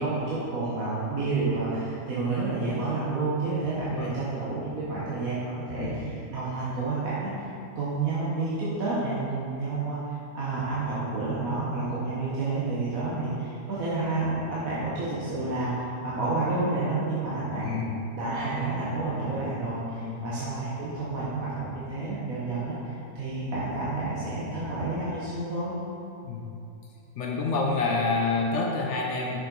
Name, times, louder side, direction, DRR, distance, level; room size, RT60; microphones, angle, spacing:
voice 1, 0.0-7.4 7.7-17.7 18.1-25.7, right 3 dB, 55° right, -9 dB, 1.4 m, -30 dB
voice 2, 17.6-18.0 20.0-20.2 26.2-26.4 27.2-29.4, left 3 dB, 60° left, 0 dB, 0.7 m, -28 dB
6.6 x 5.6 x 4.0 m, 2.8 s
omnidirectional pair, 1.8 m